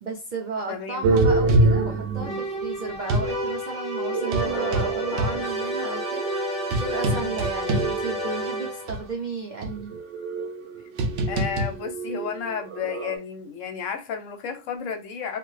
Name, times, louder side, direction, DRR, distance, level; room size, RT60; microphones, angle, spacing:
voice 1, 0.0-10.0, right 4 dB, 90° right, 0.4 m, -34 dB
voice 2, 0.7-1.1 7.1-7.3 11.3-15.4, left 6 dB, 70° left, 0.9 m, -32 dB
sound 1, 1.0-3.3 4.1-8.5 8.9-9.0 9.6-13.2, right 2 dB, 65° right, 0.7 m, -25 dB
sound 2, 2.2-9.1, right 1 dB, 30° right, 1.0 m, -30 dB
2.7 x 2.4 x 3.1 m
omnidirectional pair, 1.5 m